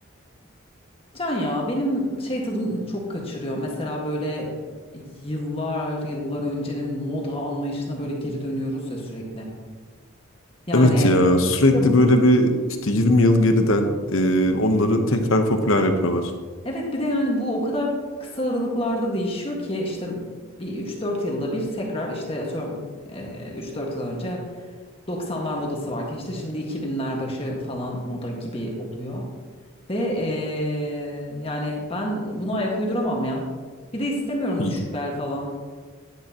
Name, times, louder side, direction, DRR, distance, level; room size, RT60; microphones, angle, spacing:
voice 1, 1.1-4.5 4.9-9.5 10.7-11.1 11.7-11.9 16.6-17.9 18.2-20.2 20.6-22.8 23.1-24.4 25.1-29.2 29.9-33.5 33.9-35.5, equal, 25° left, -2 dB, 1.8 m, -28 dB
voice 2, 10.7-12.6 12.8-16.3 34.6-34.7, left 1 dB, 70° left, 6 dB, 1.1 m, -18 dB
10.5 x 10.5 x 3.0 m, 1.5 s
head